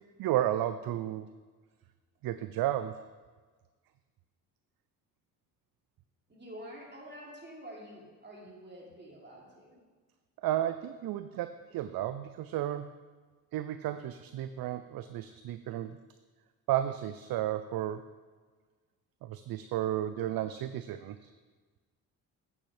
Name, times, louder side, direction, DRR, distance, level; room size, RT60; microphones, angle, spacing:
voice 1, 0.2-1.3 2.2-2.9 10.4-12.9 13.5-16.0 16.7-18.0 19.2-21.3, right 12 dB, 55° right, 11 dB, 0.5 m, -33 dB
voice 2, 6.3-9.8, equal, 25° right, -2 dB, 3.0 m, -48 dB
8.7 x 8.5 x 3.3 m, 1.4 s
hypercardioid pair, 55°, 43 cm